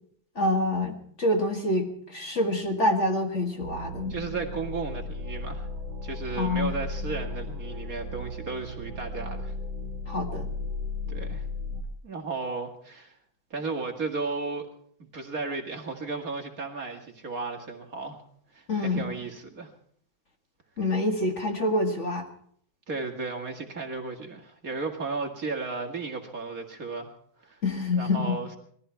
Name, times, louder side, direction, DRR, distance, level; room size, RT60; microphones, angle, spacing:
voice 1, 0.4-4.2 6.4-6.7 10.1-10.5 18.7-19.1 20.8-22.3 27.6-28.4, left 2 dB, 40° left, 3 dB, 2.0 m, -26 dB
sound 1, 3.6-11.8, left 2 dB, 65° right, 2.5 m, -35 dB
voice 2, 4.1-5.7 6.0-9.5 11.1-11.4 12.0-13.1 13.5-14.7 15.0-18.2 18.5-19.7 22.9-27.1 27.4-27.6 27.9-28.6, right 4 dB, 45° right, 3 dB, 2.4 m, -34 dB
20.5 x 14.5 x 4.6 m, 0.63 s
omnidirectional pair, 2.1 m